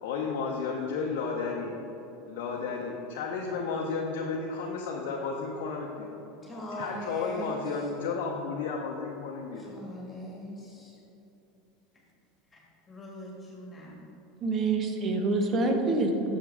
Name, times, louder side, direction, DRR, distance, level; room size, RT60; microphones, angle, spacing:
voice 1, 0.0-1.7 2.3-6.2 6.8-9.7, left 4 dB, 65° left, -1 dB, 0.8 m, -33 dB
voice 2, 6.4-7.8 9.6-11.0 12.5-12.6 12.9-14.0, equal, 20° left, -2 dB, 1.8 m, -41 dB
voice 3, 14.4-16.4, right 2 dB, 35° right, 3 dB, 1.1 m, -26 dB
8.8 x 6.6 x 3.6 m, 3.0 s
hypercardioid pair, 80°, 0 cm